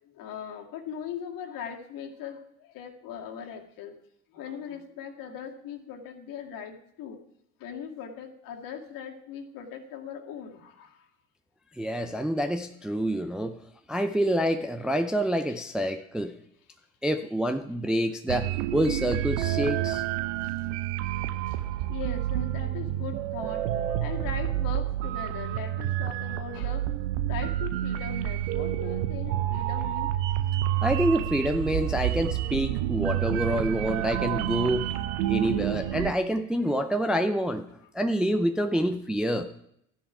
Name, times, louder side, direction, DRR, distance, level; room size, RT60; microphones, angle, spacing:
voice 1, 0.0-4.0 4.3-7.2 7.6-11.1 15.5-15.6 19.8-20.0 20.4-20.5 21.5-21.6 21.9-23.7 24.0-26.9 27.3-30.1 34.8-34.9, left 7 dB, 50° left, 2 dB, 2.1 m, -40 dB
voice 2, 11.8-13.6 13.9-16.3 17.0-20.0 30.8-34.9 35.3-37.7 37.9-39.5, equal, ahead, 7 dB, 0.5 m, -27 dB
sound 1, 18.3-36.1, right 13 dB, 60° right, 0.8 m, -29 dB
13.0 x 10.0 x 4.8 m, 0.74 s
figure-of-eight pair, 70°, 43 cm